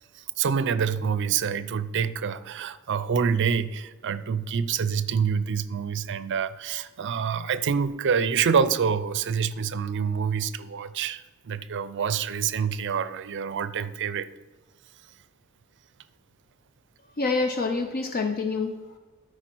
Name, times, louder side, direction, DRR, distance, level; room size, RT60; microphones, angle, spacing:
voice 1, 0.1-14.3, right 6 dB, 55° right, 14 dB, 0.5 m, -27 dB
voice 2, 17.2-19.0, left 3 dB, 40° left, 6 dB, 0.5 m, -27 dB
12.5 x 4.8 x 4.5 m, 1.3 s
head